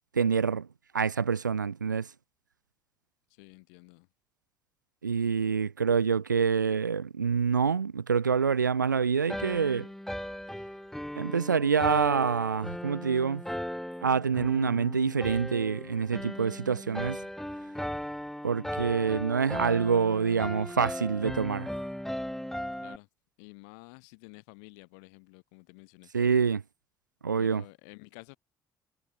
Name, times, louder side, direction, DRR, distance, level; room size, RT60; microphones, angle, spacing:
voice 1, 0.2-0.7 0.9-2.1 5.0-9.9 11.2-13.4 14.0-17.2 18.4-21.7 26.1-26.6 27.2-27.6, right 6 dB, 85° right, 0.5 m, -26 dB
voice 2, 3.3-4.1 22.8-23.1 23.4-26.1 27.4-28.4, left 38 dB, 70° left, 3.9 m, -51 dB
sound 1, 9.3-23.0, equal, 5° left, 4.7 m, -37 dB
figure-of-eight pair, 45°, 10 cm